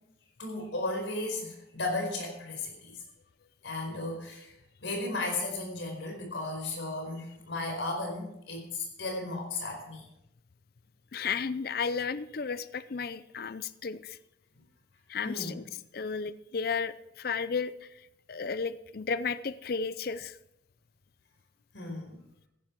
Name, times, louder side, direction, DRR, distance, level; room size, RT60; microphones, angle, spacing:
voice 1, 0.4-2.9 3.6-4.5 4.8-10.0 15.2-15.6 21.7-22.2, left 2 dB, 85° left, 3 dB, 4.7 m, -35 dB
voice 2, 11.1-14.2 15.1-20.4, left 5 dB, 50° left, 15 dB, 0.5 m, -34 dB
15.0 x 11.0 x 4.6 m, 0.82 s
head